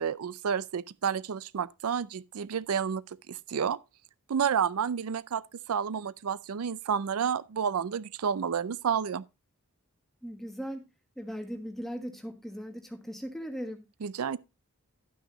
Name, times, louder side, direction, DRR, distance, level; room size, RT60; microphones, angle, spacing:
voice 1, 0.0-3.8 4.3-5.4 5.7-9.2 14.0-14.4, right 7 dB, 85° right, 0.4 m, -30 dB
voice 2, 10.2-10.8 11.2-13.9, equal, ahead, 1.3 m, -38 dB
12.0 x 6.1 x 3.8 m
head